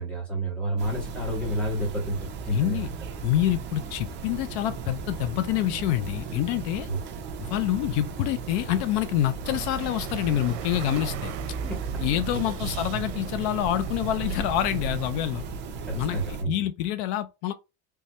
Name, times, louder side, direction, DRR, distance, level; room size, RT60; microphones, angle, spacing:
voice 1, 0.0-2.2 2.4-2.9 6.9-7.0 11.6-12.0 12.3-12.4 15.8-16.5, right 1 dB, 5° left, 1.3 m, -30 dB
sound 1, 0.8-16.4, right 5 dB, 30° right, 0.6 m, -36 dB
voice 2, 2.5-2.9 3.2-6.9 7.4-11.3 12.0-15.4 15.9-16.2 16.5-17.5, left 13 dB, 75° left, 0.5 m, -27 dB
sound 2, 9.4-15.1, right 6 dB, 85° right, 0.6 m, -36 dB
3.4 x 2.7 x 3.1 m
cardioid pair, 170°, 34 cm